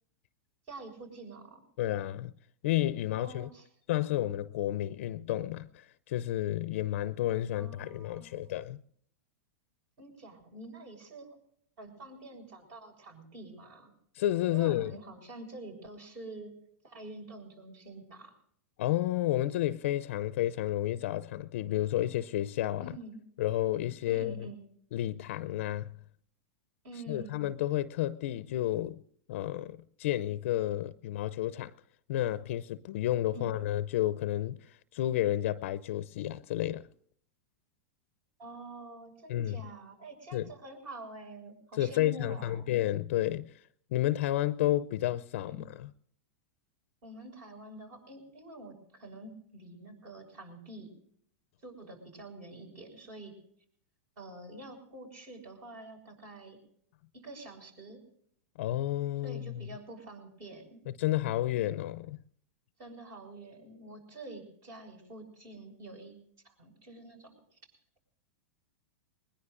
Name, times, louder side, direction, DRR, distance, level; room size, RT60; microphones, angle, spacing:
voice 1, 0.7-1.6 3.1-3.7 7.6-8.5 10.0-11.4 11.8-13.9 14.5-16.5 16.8-18.3 22.8-23.2 24.1-24.6 26.8-27.4 33.3-33.6 38.4-42.7 45.5-45.7 47.0-50.9 51.6-53.4 54.2-56.6 57.1-58.0 59.2-60.8 62.8-66.2 66.6-67.6, right 2 dB, 45° right, 5.9 m, -47 dB
voice 2, 1.8-2.3 2.6-3.5 3.9-8.8 14.2-15.0 18.8-22.9 23.4-24.5 24.9-25.9 27.1-29.0 29.3-31.7 32.1-36.9 39.3-39.6 40.3-40.5 41.8-43.5 43.9-45.9 58.6-59.6 60.9-62.2, left 13 dB, 65° left, 0.5 m, -31 dB
21.0 x 20.5 x 2.5 m
hypercardioid pair, 110°, 7 cm